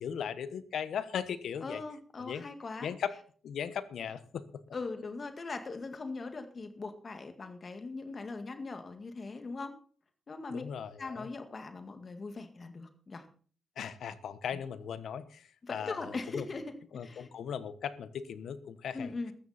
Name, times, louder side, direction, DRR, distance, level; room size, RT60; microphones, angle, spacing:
voice 1, 0.0-1.8 2.2-2.4 2.8-3.1 3.4-4.6 10.5-11.3 13.8-16.4 16.9-19.1, left 8 dB, 75° left, 13 dB, 1.2 m, -38 dB
voice 2, 1.6-2.9 4.7-9.7 10.3-10.6 11.0-13.3 14.5-14.6 15.6-16.8 17.0-17.3 18.9-19.3, left 3 dB, 35° left, 7 dB, 2.0 m, -40 dB
14.5 x 13.5 x 4.3 m, 0.44 s
wide cardioid pair, 130°, 0 cm